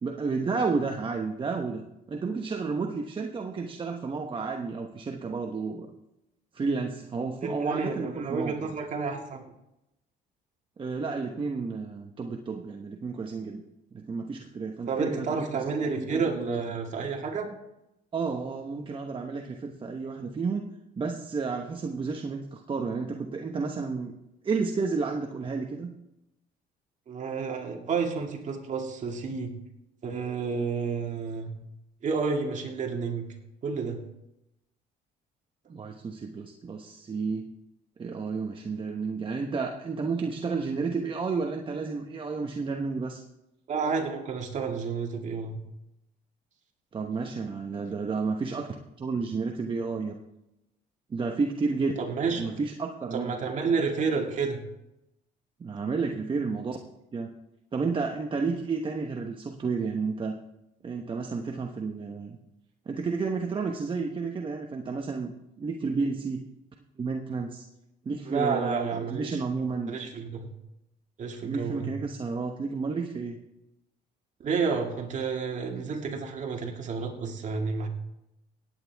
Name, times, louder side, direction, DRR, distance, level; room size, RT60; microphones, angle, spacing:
voice 1, 0.0-1.8 2.1-5.9 6.5-8.7 10.8-13.6 13.9-15.3 15.5-15.6 16.0-16.2 18.1-20.7 21.0-24.1 24.4-25.9 35.7-37.5 38.0-43.2 46.9-50.1 51.1-51.9 52.4-53.3 55.6-56.8 57.1-57.3 57.7-60.4 60.8-62.4 62.9-66.5 67.0-67.7 68.0-69.9 71.4-73.4, right 4 dB, 30° right, 2 dB, 1.0 m, -31 dB
voice 2, 7.4-9.4 14.9-17.5 27.1-29.6 30.0-31.5 32.0-33.3 33.6-34.0 43.7-45.6 52.0-52.6 53.1-54.6 68.3-69.4 69.9-70.5 71.2-71.9 74.4-77.9, right 5 dB, 45° right, 2 dB, 2.2 m, -30 dB
17.5 x 9.3 x 3.5 m, 0.89 s
cardioid pair, 110°, 17 cm